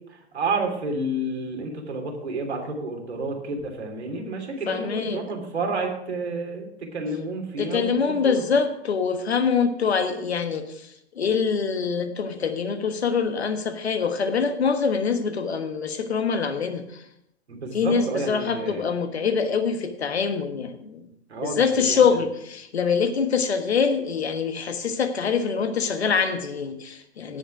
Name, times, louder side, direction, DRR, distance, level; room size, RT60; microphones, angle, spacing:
voice 1, 0.1-8.4 17.5-18.8 21.3-22.1, right 2 dB, 75° right, 2 dB, 3.0 m, -30 dB
voice 2, 4.7-5.2 7.6-17.1 17.7-21.1 21.4-27.4, left 6 dB, 75° left, 8 dB, 1.4 m, -24 dB
17.0 x 5.7 x 4.8 m, 0.77 s
figure-of-eight pair, 105°, 33 cm